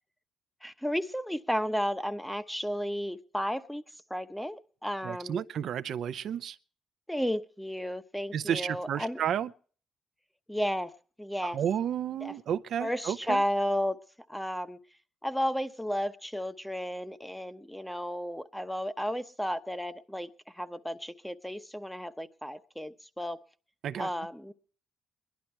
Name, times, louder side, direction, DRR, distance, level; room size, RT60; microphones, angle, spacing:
voice 1, 0.6-3.8 4.1-5.4 7.1-9.2 10.5-10.9 11.2-11.6 12.2-12.3 12.8-14.0 14.3-14.8 15.2-20.3 20.6-23.4 24.0-24.5, equal, 5° left, 0.9 m, -33 dB
voice 2, 5.0-6.6 8.3-9.5 11.4-13.4 23.8-24.1, right 9 dB, 70° right, 0.6 m, -32 dB
21.5 x 11.5 x 4.5 m
cardioid pair, 90°, 0 cm